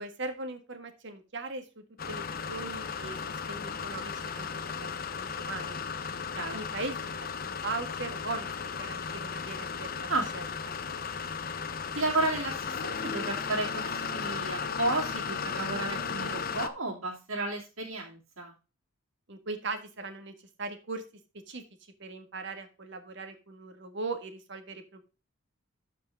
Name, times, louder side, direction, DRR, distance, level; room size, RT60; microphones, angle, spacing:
voice 1, 0.0-4.9 5.2-5.8 6.5-9.9 10.3-10.8 19.3-21.0 21.5-21.6 22.0-25.0, right 3 dB, 55° right, 7 dB, 1.7 m, -39 dB
sound 1, 2.0-16.7, left 6 dB, 45° left, 0.8 m, -35 dB
voice 2, 11.9-18.5, right 2 dB, 75° right, -3 dB, 2.8 m, -32 dB
12.5 x 5.1 x 3.5 m, 0.32 s
head